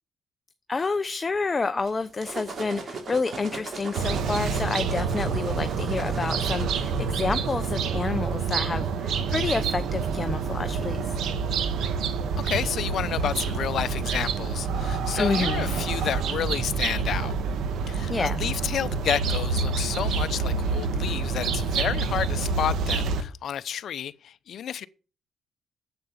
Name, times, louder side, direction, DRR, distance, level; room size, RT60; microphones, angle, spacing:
voice 1, 0.7-11.1 15.1-15.7 18.1-18.4, left 4 dB, 30° left, 0.8 m, -29 dB
sound 1, 1.9-7.7, right 3 dB, 50° right, 3.0 m, -39 dB
sound 2, 4.0-23.2, right 5 dB, 75° right, 1.5 m, -27 dB
voice 2, 12.4-17.3 17.9-24.9, left 9 dB, 65° left, 0.7 m, -30 dB
9.3 x 8.1 x 8.4 m
cardioid pair, 90°, 0 cm